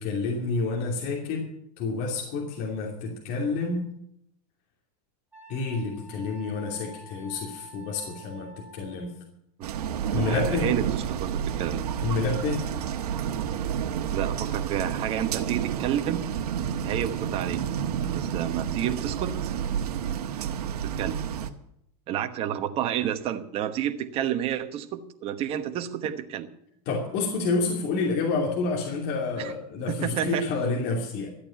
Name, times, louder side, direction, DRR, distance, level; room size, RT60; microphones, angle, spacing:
voice 1, 0.0-1.5 1.8-3.9 5.5-9.1 10.1-10.7 12.0-12.6 26.9-31.3, left 4 dB, 40° left, -1 dB, 2.9 m, -29 dB
Wind instrument woodwind instrument, 5.3-9.1, right 2 dB, 10° right, 2.9 m, -48 dB
sound 1, 9.6-21.5, right 9 dB, 75° right, 1.4 m, -30 dB
voice 2, 10.2-11.8 14.1-16.3 16.8-17.6 18.1-19.5 20.8-21.2 22.1-26.5 29.4-29.5 29.9-30.5, right 10 dB, 30° right, 8 dB, 1.1 m, -30 dB
13.5 x 8.6 x 8.8 m, 0.73 s
supercardioid pair, 155°, 20 cm